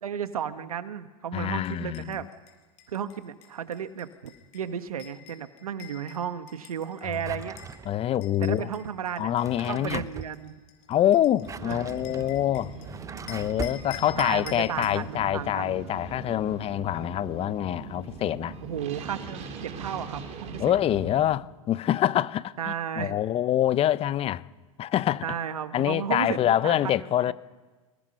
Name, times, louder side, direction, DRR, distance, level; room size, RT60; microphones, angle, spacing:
voice 1, 0.0-2.3 2.9-7.9 8.4-9.4 9.7-10.5 11.6-11.9 14.1-15.8 18.6-20.8 22.6-23.2 25.2-27.3, right 8 dB, 85° right, 1.5 m, -34 dB
voice 2, 1.3-2.2 7.9-8.7 9.2-10.0 10.9-12.7 13.3-18.6 20.6-24.4 24.8-25.2 25.7-27.3, left 12 dB, 35° left, 0.8 m, -25 dB
sound 1, 1.6-7.8 8.2-12.9 13.3-15.0, left 10 dB, 55° left, 5.8 m, -48 dB
Drawer open or close, 7.2-8.2 9.2-10.4 11.2-13.8, right 6 dB, 15° right, 0.9 m, -40 dB
sound 2, 11.4-21.3, right 5 dB, 40° right, 4.3 m, -41 dB
28.5 x 19.0 x 5.5 m
hypercardioid pair, 100°, 18 cm